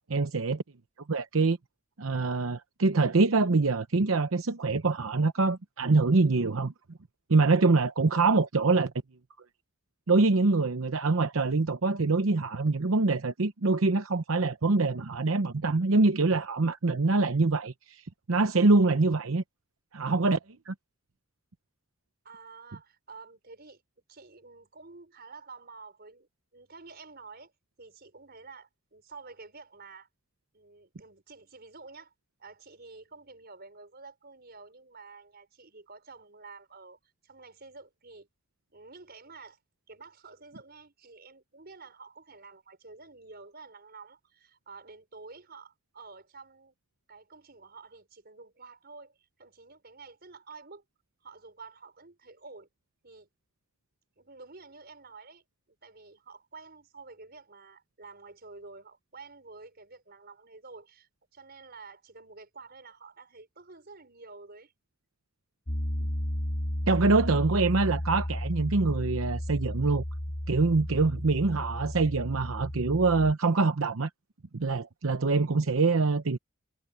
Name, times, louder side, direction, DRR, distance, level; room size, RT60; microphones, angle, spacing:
voice 1, 0.1-0.6 1.1-1.6 2.0-6.7 7.3-8.9 10.1-19.4 19.9-20.4 20.7-20.8 66.9-70.0 70.5-74.1 74.5-76.4, right 3 dB, 85° right, 0.8 m, -25 dB
voice 2, 22.2-23.8 24.1-27.5 27.8-30.1 30.5-32.1 32.4-38.3 38.7-39.6 39.9-46.7 47.1-50.8 51.2-52.7 53.0-53.3 54.2-55.4 55.8-64.7, right 4 dB, 50° right, 5.0 m, -50 dB
Piano, 65.7-73.3, equal, 35° left, 1.4 m, -33 dB
head